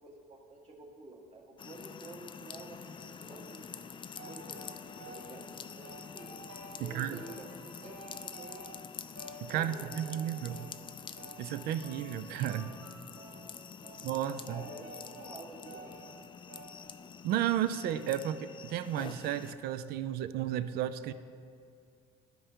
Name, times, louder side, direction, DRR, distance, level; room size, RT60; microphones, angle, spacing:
voice 1, 0.0-3.8 4.2-6.3 6.8-8.7 9.5-10.2 10.6-10.7 14.4-14.9 15.2-16.1, right 2 dB, 40° right, -3 dB, 1.8 m, -50 dB
sound 1, 1.6-19.5, left 7 dB, 30° left, 0.3 m, -47 dB
sound 2, 4.1-5.4 5.8-6.9 7.2-8.9 9.2-10.7 11.2-12.2 12.5-13.5 13.8-14.1 14.5-16.1 16.5-16.9, right 1 dB, 85° right, 1.7 m, -50 dB
voice 2, 9.4-10.7 11.4-12.7 14.0-14.6 17.2-21.1, right 11 dB, 65° right, 12 dB, 0.4 m, -33 dB
12.5 x 5.4 x 2.8 m, 2.3 s
supercardioid pair, 75°, 17 cm